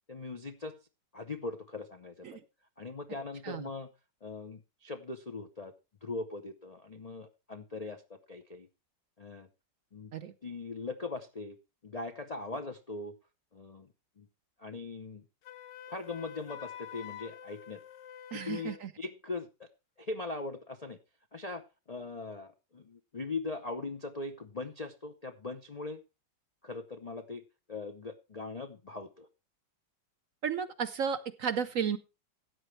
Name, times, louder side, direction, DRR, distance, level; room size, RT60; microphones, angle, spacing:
voice 1, 0.1-0.8 1.1-2.4 2.8-3.9 4.2-5.7 6.0-8.7 9.2-9.5 9.9-10.1 10.4-11.6 11.8-13.1 13.5-13.9 14.2-14.3 14.6-15.2 15.9-17.8 18.3-19.7 20.0-21.0 21.3-21.6 21.9-26.0 26.6-27.4 27.7-29.3, left 3 dB, 45° left, 4 dB, 0.5 m, -40 dB
Wind instrument woodwind instrument, 15.4-18.9, left 10 dB, 90° left, 1.6 m, -47 dB
voice 2, 18.3-18.9 30.4-32.0, right 7 dB, 60° right, 13 dB, 0.9 m, -33 dB
13.5 x 9.2 x 3.2 m, 0.29 s
omnidirectional pair, 1.9 m